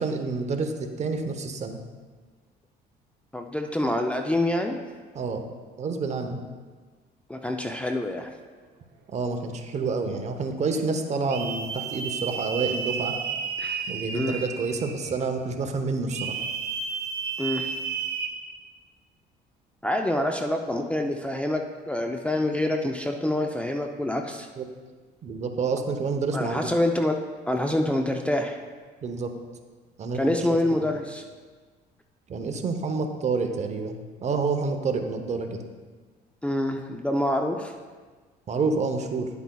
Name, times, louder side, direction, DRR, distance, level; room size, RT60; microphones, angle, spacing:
voice 1, 0.0-1.8 5.1-5.4 5.8-6.4 9.1-13.1 13.9-16.4 24.6-24.7 25.2-26.6 29.0-29.3 30.0-30.2 30.5-31.0 32.3-35.6 38.5-39.3, right 4 dB, 40° right, 5 dB, 0.8 m, -28 dB
voice 2, 3.3-4.8 7.3-8.3 13.6-13.8 14.1-14.4 17.4-17.7 19.8-21.6 21.9-24.5 26.3-27.2 27.5-28.6 30.1-31.2 36.4-37.7, left 1 dB, 5° left, 2 dB, 0.4 m, -26 dB
sound 1, 11.3-15.2 16.1-18.3, right 6 dB, 90° right, 0.9 m, -32 dB
10.5 x 8.1 x 2.3 m, 1.4 s
cardioid pair, 110°, 17 cm